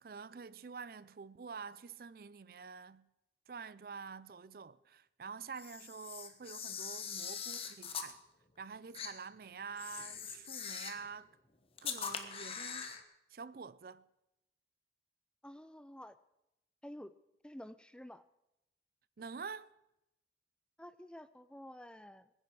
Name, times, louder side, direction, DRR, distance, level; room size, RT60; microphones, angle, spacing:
voice 1, 0.0-3.1 3.5-8.2 8.6-11.3 11.8-13.0 13.3-14.0 19.2-19.7, right 5 dB, 55° right, 0.4 m, -47 dB
Camera, 5.6-8.1 8.9-9.1 9.8-11.1 11.8-13.0, left 6 dB, 35° left, 1.2 m, -42 dB
voice 2, 15.4-16.2 16.8-17.1 17.4-18.2 20.8-22.3, left 1 dB, 5° left, 0.4 m, -50 dB
22.0 x 9.9 x 4.8 m
head